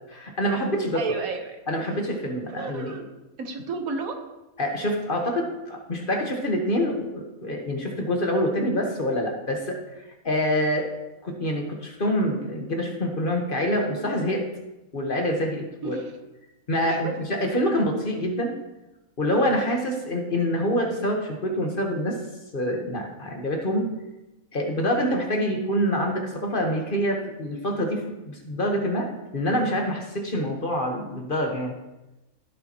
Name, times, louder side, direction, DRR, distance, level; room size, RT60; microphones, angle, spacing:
voice 1, 0.1-1.0 1.7-3.0 4.6-10.9 11.2-14.4 14.9-16.0 16.7-18.5 19.2-22.2 22.5-23.9 24.5-29.1 29.3-31.7, equal, 40° left, 2 dB, 1.4 m, -26 dB
voice 2, 0.9-1.6 2.5-3.1 3.4-4.2 15.8-16.1 16.8-17.1, right 4 dB, 75° right, 5 dB, 1.5 m, -32 dB
15.0 x 6.8 x 3.0 m, 1.0 s
omnidirectional pair, 1.5 m